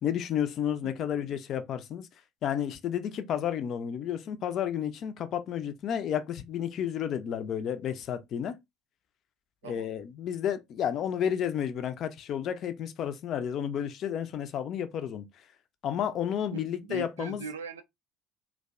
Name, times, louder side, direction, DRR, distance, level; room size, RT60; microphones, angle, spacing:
voice 1, 0.0-2.1 2.4-8.6 9.6-15.2 15.8-17.5, left 9 dB, 50° left, 0.4 m, -31 dB
voice 2, 16.5-17.8, right 6 dB, 80° right, 0.3 m, -40 dB
2.5 x 2.1 x 2.4 m
hypercardioid pair, 60°, 0 cm